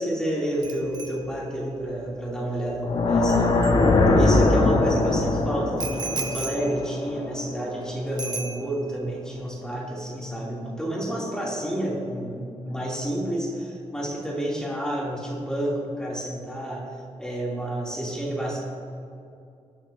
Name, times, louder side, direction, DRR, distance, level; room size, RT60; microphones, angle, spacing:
voice 1, 0.0-3.7 4.1-16.9 17.2-18.6, right 1 dB, 5° left, -5 dB, 2.5 m, -30 dB
Bicycle bell, 0.6-4.5 5.8-7.8 8.2-9.1 9.3-9.6, right 3 dB, 35° right, 0.8 m, -37 dB
sound 1, 2.8-7.9, left 2 dB, 50° left, 1.3 m, -21 dB
19.5 x 11.5 x 2.6 m, 2.6 s
wide cardioid pair, 175°, 12 cm